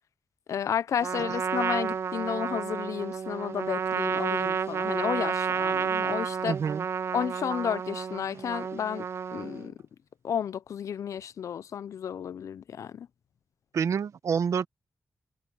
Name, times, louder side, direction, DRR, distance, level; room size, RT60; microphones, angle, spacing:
voice 1, 0.5-6.6 7.1-9.1 9.3-9.8 10.2-13.1, left 8 dB, 85° left, 0.5 m, -32 dB
Trumpet, 1.0-9.7, right 6 dB, 55° right, 0.4 m, -31 dB
voice 2, 6.4-6.8 13.7-14.7, right 6 dB, 80° right, 0.9 m, -27 dB
wide cardioid pair, 105°, 5 cm